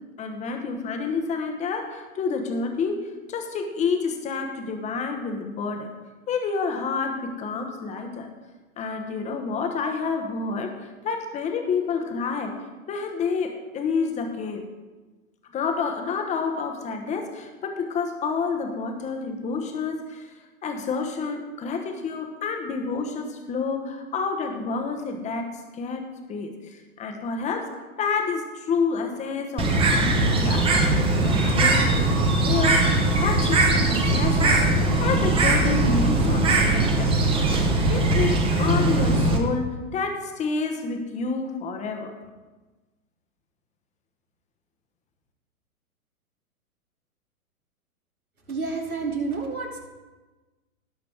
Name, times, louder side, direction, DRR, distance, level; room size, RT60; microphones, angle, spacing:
voice 1, 0.2-5.9 6.3-8.3 8.8-10.7 11.0-12.6 12.9-14.6 15.5-20.3 20.6-26.0 26.3-27.7 28.0-30.8 31.2-37.2 37.9-42.1, left 5 dB, 15° left, 4 dB, 1.2 m, -29 dB
Bird, 29.6-39.4, right 2 dB, 10° right, 1.2 m, -20 dB
voice 2, 48.5-49.8, right 4 dB, 80° right, -1 dB, 2.8 m, -29 dB
18.0 x 6.6 x 3.5 m, 1.2 s
figure-of-eight pair, 110°, 43 cm